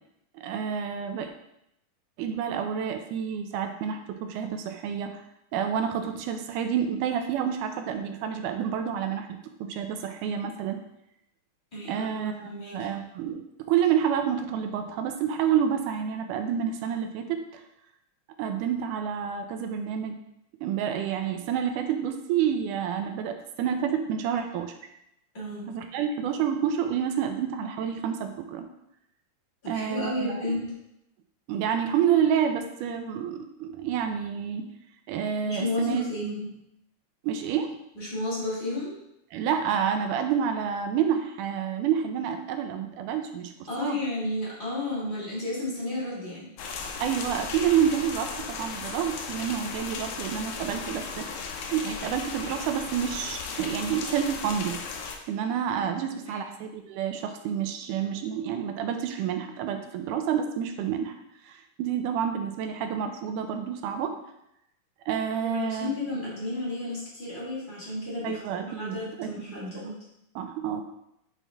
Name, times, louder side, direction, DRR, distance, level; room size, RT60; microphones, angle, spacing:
voice 1, 0.3-1.3 2.2-5.2 5.5-9.3 9.6-10.8 11.9-13.4 13.7-17.6 18.4-20.2 20.6-24.7 25.7-28.7 29.7-30.4 31.5-34.7 35.1-36.0 37.2-37.8 39.3-43.5 43.8-44.0 47.0-54.8 55.3-61.1 61.4-64.1 65.1-66.0 68.2-69.3 70.4-70.8, right 8 dB, 80° right, 6 dB, 1.9 m, -29 dB
voice 2, 11.7-12.9 25.3-25.7 29.6-30.7 35.4-36.5 37.9-39.0 43.7-46.5 55.8-56.8 65.4-68.4 68.8-69.9, left 2 dB, 25° left, -7 dB, 1.3 m, -33 dB
sound 1, 46.6-55.2, left 5 dB, 75° left, 1.8 m, -36 dB
7.1 x 4.5 x 3.4 m, 0.81 s
omnidirectional pair, 4.0 m